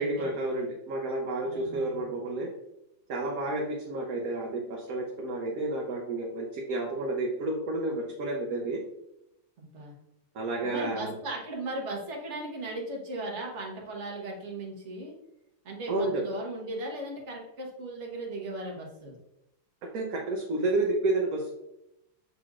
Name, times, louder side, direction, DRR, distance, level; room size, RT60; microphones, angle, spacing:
voice 1, 0.0-2.5 3.1-8.8 10.3-11.1 15.9-16.2 19.9-21.5, right 2 dB, 65° right, 0 dB, 1.0 m, -30 dB
voice 2, 1.4-2.1 9.6-9.9 10.6-15.1 15.6-19.2, right 2 dB, 45° right, -1 dB, 1.2 m, -37 dB
6.6 x 3.4 x 2.4 m, 0.86 s
omnidirectional pair, 2.0 m